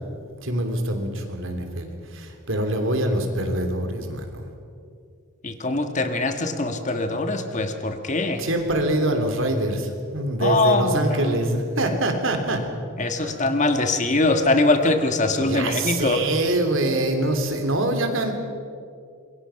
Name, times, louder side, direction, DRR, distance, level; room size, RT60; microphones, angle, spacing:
voice 1, 0.4-4.5 8.3-12.6 13.2-13.3 15.4-18.3, right 1 dB, 65° right, 5 dB, 3.2 m, -24 dB
voice 2, 5.4-8.5 10.4-11.4 13.0-16.2, left 2 dB, 35° left, 6 dB, 1.6 m, -22 dB
26.5 x 22.5 x 5.9 m, 2.4 s
head